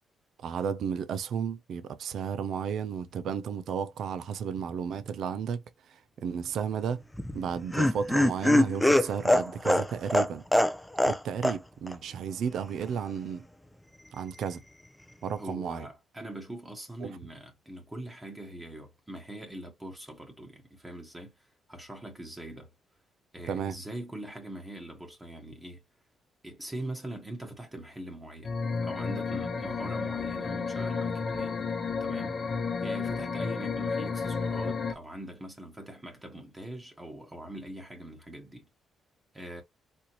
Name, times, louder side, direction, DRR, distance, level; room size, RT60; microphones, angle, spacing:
voice 1, 0.4-7.0 7.3-10.4 11.0-13.4 14.1-14.6 15.2-15.9 17.0-17.1 23.5-23.8, right 7 dB, 70° right, 0.5 m, -33 dB
Laughter, 7.1-11.2 11.4-11.6 11.9-12.0, left 1 dB, 5° left, 0.5 m, -23 dB
voice 2, 15.4-22.7 23.3-25.8 26.4-28.6 28.8-31.6 32.0-32.4 32.8-38.7 39.3-39.6, right 1 dB, 15° right, 1.1 m, -42 dB
sound 1, 28.4-34.9, left 5 dB, 45° left, 0.7 m, -32 dB
4.3 x 2.5 x 2.9 m
cardioid pair, 90°, 0 cm